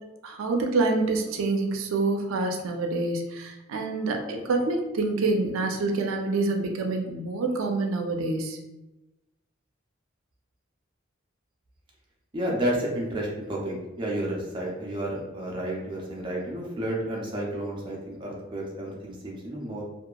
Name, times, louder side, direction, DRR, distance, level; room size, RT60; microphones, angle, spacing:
voice 1, 0.2-8.6, right 3 dB, 90° right, 3 dB, 0.4 m, -27 dB
voice 2, 12.3-19.8, right 1 dB, 25° right, -3 dB, 0.5 m, -31 dB
2.7 x 2.3 x 2.2 m, 1.0 s
head